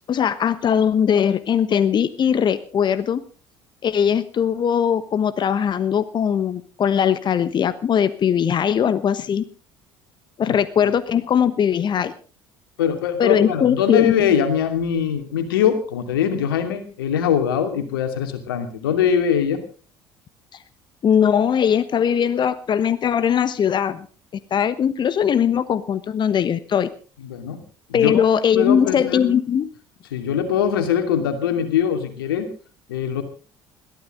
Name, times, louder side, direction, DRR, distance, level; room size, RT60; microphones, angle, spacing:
voice 1, 0.1-3.2 3.8-9.4 10.4-12.1 13.2-14.1 21.0-24.1 24.5-26.9 27.9-29.7, left 8 dB, 40° left, 14 dB, 1.1 m, -20 dB
voice 2, 12.8-19.6 27.2-27.6 27.9-28.2 28.6-29.3 30.1-32.5 32.9-33.2, left 8 dB, 75° left, 7 dB, 2.7 m, -22 dB
21.5 x 14.5 x 3.8 m, 0.36 s
figure-of-eight pair, 60°, 12 cm